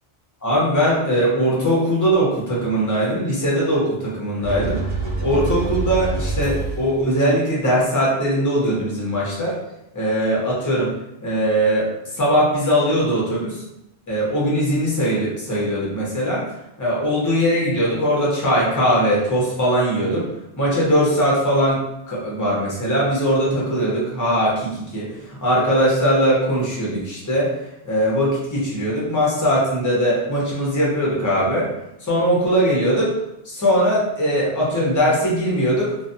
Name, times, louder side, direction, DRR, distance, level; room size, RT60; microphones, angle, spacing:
voice 1, 0.4-4.8 5.2-9.6 9.9-10.9 11.2-13.6 14.1-16.4 16.8-20.3 20.6-31.7 32.0-33.1 33.4-35.9, equal, 20° left, -5 dB, 0.7 m, -20 dB
sound 1, 4.4-7.1, right 3 dB, 60° right, 1.0 m, -26 dB
2.5 x 2.4 x 2.6 m, 0.86 s
omnidirectional pair, 1.2 m